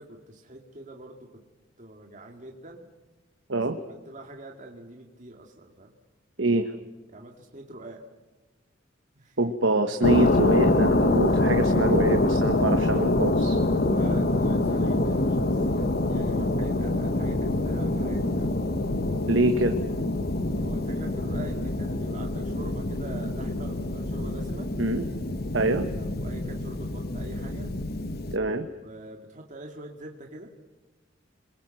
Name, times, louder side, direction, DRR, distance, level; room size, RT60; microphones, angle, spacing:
voice 1, 0.0-1.4 1.8-2.9 3.5-5.9 7.1-8.0 9.1-9.4 13.8-18.6 20.6-24.7 26.0-27.7 28.8-30.5, right 1 dB, 40° right, 1 dB, 2.2 m, -44 dB
voice 2, 6.4-6.7 9.4-13.6 19.3-19.8 24.8-25.0 25.5-25.9 28.3-28.7, right 2 dB, 75° right, 6 dB, 1.5 m, -25 dB
sound 1, 10.0-28.4, left 2 dB, 55° left, 1.2 m, -25 dB
27.5 x 22.0 x 7.8 m, 1.2 s
head